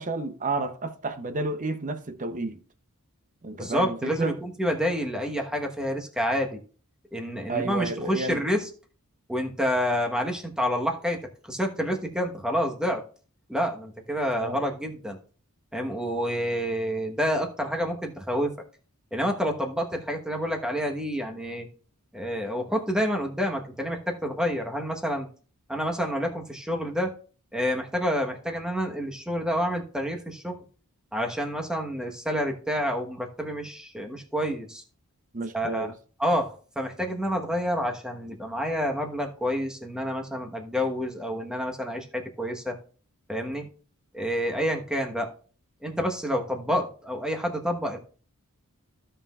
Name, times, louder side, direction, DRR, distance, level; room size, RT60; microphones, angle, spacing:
voice 1, 0.0-2.6 3.4-4.4 7.5-8.4 14.4-14.6 35.3-35.9, right 3 dB, 35° right, 0.7 m, -31 dB
voice 2, 3.6-6.6 7.1-8.7 9.3-11.2 11.5-13.0 13.5-15.2 15.7-18.5 19.1-21.7 22.1-25.3 25.7-27.1 27.5-30.6 31.1-34.8 35.5-35.9 36.2-42.8 43.3-43.7 44.1-45.3 45.8-48.0, equal, 5° right, 1.1 m, -28 dB
15.5 x 5.6 x 2.4 m
head